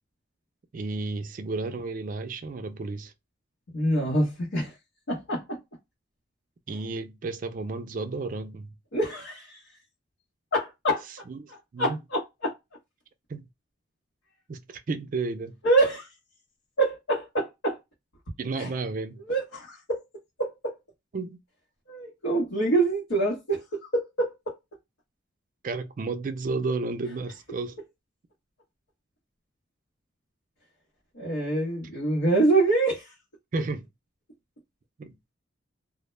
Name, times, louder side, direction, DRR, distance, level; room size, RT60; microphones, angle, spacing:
voice 1, 0.7-3.1 6.7-8.7 11.3-12.0 13.3-13.4 14.5-15.6 18.4-19.2 21.1-21.4 25.6-27.8 33.5-33.9 35.0-35.2, right 3 dB, 40° right, 0.3 m, -32 dB
voice 2, 3.7-4.7 5.1-5.6 8.9-9.6 10.5-11.0 11.8-12.5 15.6-16.1 16.8-17.8 18.6-18.7 19.3-20.0 20.4-20.7 21.9-24.6 31.1-33.1, right 2 dB, 80° left, 0.9 m, -25 dB
2.1 x 2.1 x 3.0 m
head